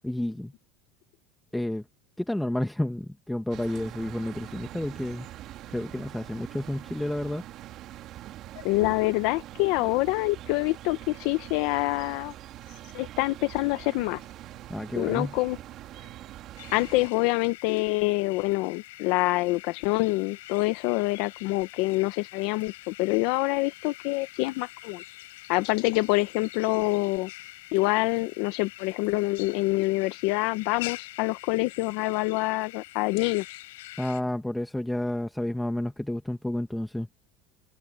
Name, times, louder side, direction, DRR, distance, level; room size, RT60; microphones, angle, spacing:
voice 1, 0.0-0.5 1.5-1.8 2.2-5.3 5.7-7.4 14.7-15.3 34.0-37.1, left 1 dB, 5° left, 1.4 m, -30 dB
sound 1, 3.5-17.1, right 13 dB, 50° right, 2.0 m, -43 dB
voice 2, 8.6-12.3 12.9-14.2 15.0-15.6 16.7-25.0 25.5-27.3 27.7-33.6, left 21 dB, 70° left, 0.8 m, -26 dB
sound 2, 16.6-34.2, left 19 dB, 90° left, 5.9 m, -45 dB
supercardioid pair, 120°, 0 cm